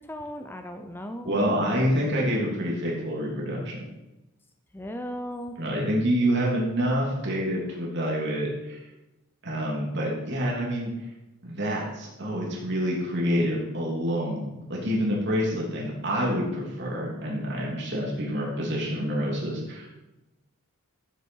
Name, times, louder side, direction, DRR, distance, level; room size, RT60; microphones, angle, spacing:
voice 1, 0.1-1.6 4.7-5.6, equal, 10° left, 6 dB, 0.6 m, -36 dB
voice 2, 1.2-3.8 5.6-8.8 9.4-10.9 11.4-20.1, equal, 50° right, -3 dB, 3.1 m, -27 dB
14.0 x 8.1 x 4.6 m, 1.0 s
head